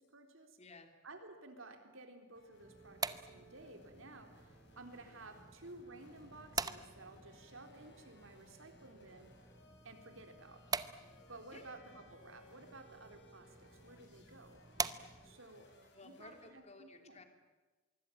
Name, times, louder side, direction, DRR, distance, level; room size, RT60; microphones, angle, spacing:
voice 1, 0.0-0.6 1.0-9.3 9.8-10.6 11.3-14.6 15.2-15.7 16.0-17.2, right 2 dB, 65° right, 5 dB, 3.9 m, -54 dB
voice 2, 0.6-0.9 11.5-11.6 15.9-17.2, left 3 dB, 30° left, 6 dB, 2.9 m, -55 dB
sound 1, 2.3-16.5, equal, 55° left, 6.5 m, -64 dB
sound 2, 2.6-15.5, right 4 dB, 15° right, 0.8 m, -46 dB
24.5 x 24.0 x 9.0 m, 1.3 s
head